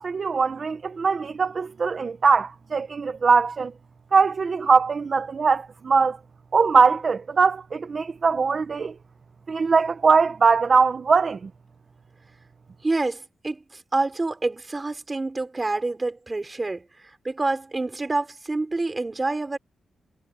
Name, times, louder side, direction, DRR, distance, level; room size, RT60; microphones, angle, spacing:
voice 1, 0.0-3.7 4.1-6.2 6.5-8.9 9.5-11.5, right 5 dB, 35° right, 0.8 m, -21 dB
voice 2, 12.8-16.8 17.2-19.6, right 2 dB, 20° right, 5.1 m, -27 dB
wide cardioid pair, 165°, 0 cm